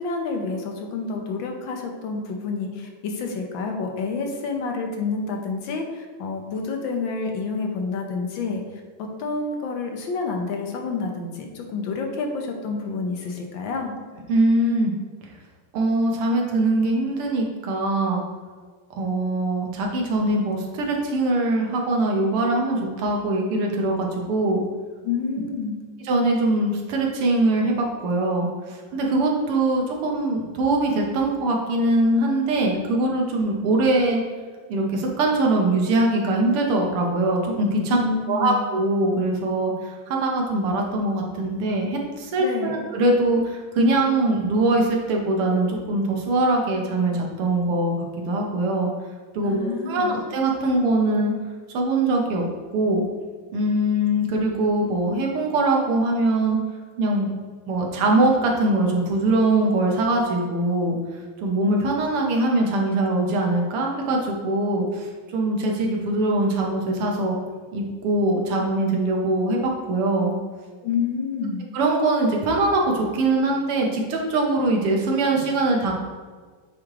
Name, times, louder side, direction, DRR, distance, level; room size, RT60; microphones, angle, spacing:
voice 1, 0.0-8.6 9.0-13.9 25.0-25.8 37.9-38.6 42.4-42.8 49.4-50.1 70.8-71.7, left 4 dB, 65° left, 3 dB, 1.5 m, -28 dB
voice 2, 14.3-14.9 15.7-18.2 19.0-24.6 26.0-34.2 34.7-38.0 38.3-47.9 48.3-48.9 49.4-51.3 51.7-52.4 52.7-53.1 53.5-56.6 57.0-57.3 57.7-61.0 61.4-67.4 67.7-70.4 71.7-75.9, right 2 dB, 90° right, 0 dB, 1.9 m, -22 dB
8.3 x 3.1 x 3.7 m, 1.5 s
omnidirectional pair, 2.4 m